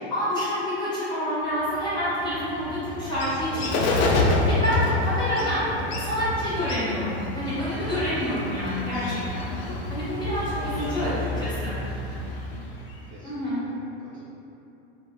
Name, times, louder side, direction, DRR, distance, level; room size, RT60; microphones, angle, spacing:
voice 1, 0.1-3.9 4.5-5.7 5.9-9.5 9.9-11.1 11.4-11.7 13.2-13.6, equal, 15° left, -12 dB, 1.1 m, -28 dB
Bird, 1.6-13.1, left 2 dB, 75° left, 0.5 m, -28 dB
voice 2, 4.3-5.3 5.6-5.9 9.3-9.7 10.5-11.4 12.2-12.8 13.1-14.2, right 2 dB, 25° right, -11 dB, 0.4 m, -40 dB
2.0 x 2.0 x 3.5 m, 2.9 s
supercardioid pair, 120°, 32 cm